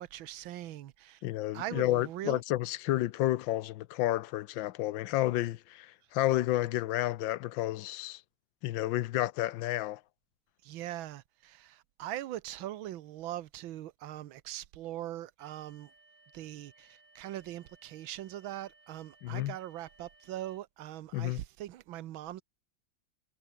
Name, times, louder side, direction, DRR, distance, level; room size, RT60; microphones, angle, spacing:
voice 1, 0.0-1.2 1.5-2.4 10.6-15.9 16.3-22.4, right 13 dB, 90° right, 1.6 m, -41 dB
voice 2, 1.2-8.2 8.6-10.0 19.2-19.5 21.1-21.4, left 15 dB, 85° left, 1.4 m, -31 dB
sound 1, 15.4-20.6, right 3 dB, 40° right, 4.6 m, -63 dB
omnidirectional pair, 2.1 m